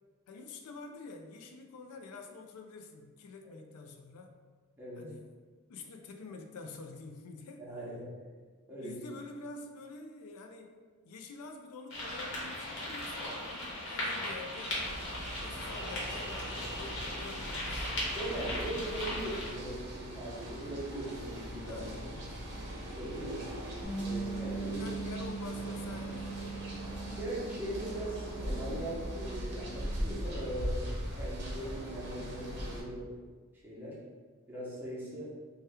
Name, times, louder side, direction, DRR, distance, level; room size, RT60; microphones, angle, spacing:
voice 1, 0.3-4.4 5.0-5.3 5.7-7.7 8.8-10.8 11.0-14.8 15.4-17.9 21.7-22.4 24.6-26.5, left 3 dB, 80° left, 4 dB, 0.4 m, -47 dB
voice 2, 7.6-8.1 8.7-9.0 18.1-21.8 22.9-23.4 23.9-24.9 27.0-33.2 33.6-34.0 34.5-35.3, right 1 dB, 10° right, -8 dB, 0.8 m, -40 dB
sound 1, 11.9-19.5, left 1 dB, 65° left, 1.0 m, -38 dB
sound 2, 14.8-32.8, equal, 55° right, 0.7 m, -40 dB
Bass guitar, 23.8-30.1, right 4 dB, 35° left, 0.9 m, -41 dB
2.8 x 2.2 x 3.4 m, 1.5 s
head